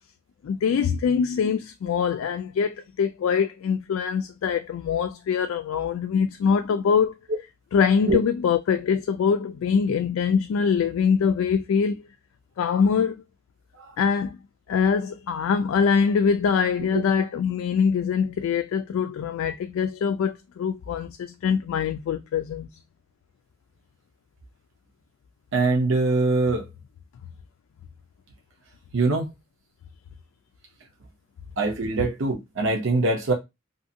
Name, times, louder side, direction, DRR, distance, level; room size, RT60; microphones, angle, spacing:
voice 1, 0.4-7.1 7.7-12.1 12.6-13.2 14.0-14.4 14.7-22.7, left 6 dB, 80° left, 0.3 m, -23 dB
voice 2, 25.5-26.7 28.9-29.3 31.6-33.3, right 3 dB, 65° right, 0.8 m, -23 dB
2.6 x 2.5 x 2.7 m
head